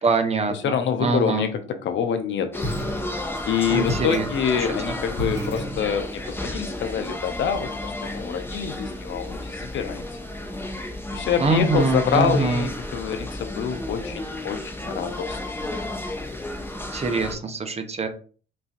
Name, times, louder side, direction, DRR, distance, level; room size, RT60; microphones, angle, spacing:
voice 1, 0.0-1.5 3.7-4.3 4.6-4.7 11.4-12.7 16.9-18.1, right 3 dB, 30° right, 7 dB, 0.8 m, -24 dB
voice 2, 0.6-2.7 3.5-10.0 11.1-15.4, left 7 dB, 70° left, 8 dB, 0.7 m, -26 dB
sound 1, 2.5-17.3, left 1 dB, 10° left, 1.0 m, -32 dB
sound 2, 2.6-3.5 3.9-6.2, equal, 50° left, 1.7 m, -32 dB
5.5 x 2.5 x 2.4 m, 0.41 s
cardioid pair, 90°, 20 cm